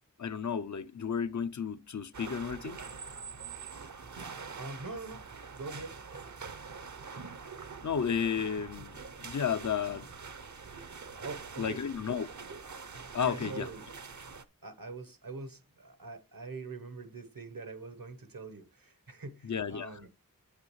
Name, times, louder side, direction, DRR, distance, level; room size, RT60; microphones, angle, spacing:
voice 1, 0.2-2.8 7.8-10.1 11.6-12.3 13.1-13.7 19.4-20.0, left 7 dB, 60° left, 0.6 m, -33 dB
sound 1, 2.1-14.4, right 5 dB, 60° right, 0.7 m, -45 dB
voice 2, 4.5-5.3 5.5-6.0 7.0-7.1 11.2-11.8 13.1-13.9 14.6-20.1, right 3 dB, 75° right, 1.1 m, -43 dB
8.7 x 7.4 x 3.1 m
wide cardioid pair, 50°, 34 cm